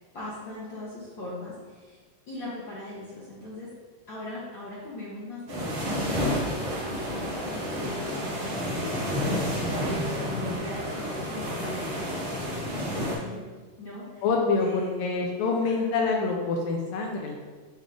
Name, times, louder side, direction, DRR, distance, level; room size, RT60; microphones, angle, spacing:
voice 1, 0.0-2.0 2.3-3.7 4.1-13.4 13.8-14.3 14.5-15.1 15.6-16.0, left 2 dB, 65° left, -9 dB, 1.1 m, -39 dB
sound 1, 5.5-13.2, equal, 50° right, 1.7 m, -30 dB
voice 2, 14.2-17.4, left 4 dB, 85° left, 1 dB, 2.3 m, -26 dB
7.4 x 3.6 x 3.6 m, 1.4 s
omnidirectional pair, 4.0 m